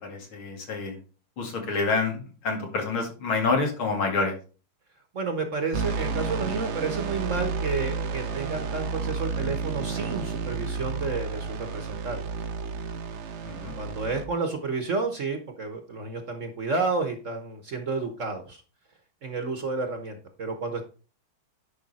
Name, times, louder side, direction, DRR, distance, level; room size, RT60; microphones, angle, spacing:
voice 1, 0.0-1.0 1.4-4.4 13.4-13.7, left 4 dB, 80° left, 2 dB, 3.1 m, -28 dB
voice 2, 5.1-12.2 13.8-18.6 19.2-20.9, right 4 dB, 45° right, 6 dB, 1.1 m, -31 dB
sound 1, 5.7-14.2, right 5 dB, 75° right, 0.6 m, -31 dB
10.0 x 5.5 x 4.1 m, 0.36 s
omnidirectional pair, 2.2 m